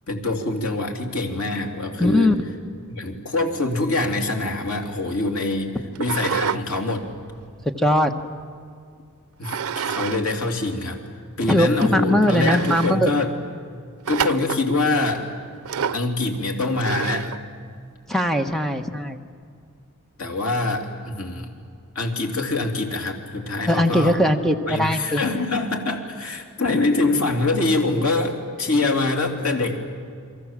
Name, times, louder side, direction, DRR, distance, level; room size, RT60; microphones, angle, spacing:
voice 1, 0.1-2.3 2.9-7.1 9.4-11.0 11.4-13.3 14.1-15.3 15.9-17.4 20.2-21.5 21.9-24.2 24.7-29.8, left 2 dB, 80° left, 2 dB, 3.2 m, -24 dB
voice 2, 2.0-2.3 7.8-8.1 11.5-13.1 18.1-19.2 23.7-25.2, left 1 dB, ahead, 6 dB, 1.2 m, -20 dB
sound 1, 6.0-6.6 7.0-8.4 9.4-10.2 10.5-10.6 11.3-11.4 11.8-11.9 12.3-13.0 14.1-14.7 15.7-16.1 16.8-17.4, right 7 dB, 80° right, 0.6 m, -28 dB
30.0 x 23.5 x 7.5 m, 2.3 s
head